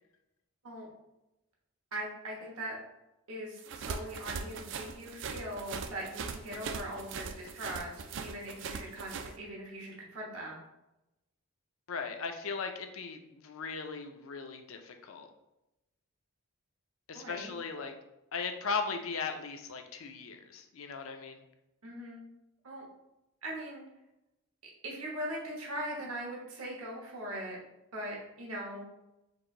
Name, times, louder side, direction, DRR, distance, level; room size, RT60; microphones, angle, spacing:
voice 1, 1.9-2.8 3.3-10.6 17.1-17.5 21.8-22.2 22.6-22.8 23.4-23.8 24.8-27.6 27.9-28.9, right 1 dB, 80° right, -2 dB, 1.3 m, -40 dB
sound 1, 3.6-9.3, right 5 dB, 55° right, 0.3 m, -40 dB
voice 2, 11.9-15.3 17.1-17.9 18.3-21.4, left 5 dB, 70° left, 6 dB, 0.5 m, -38 dB
4.8 x 2.6 x 3.8 m, 0.91 s
head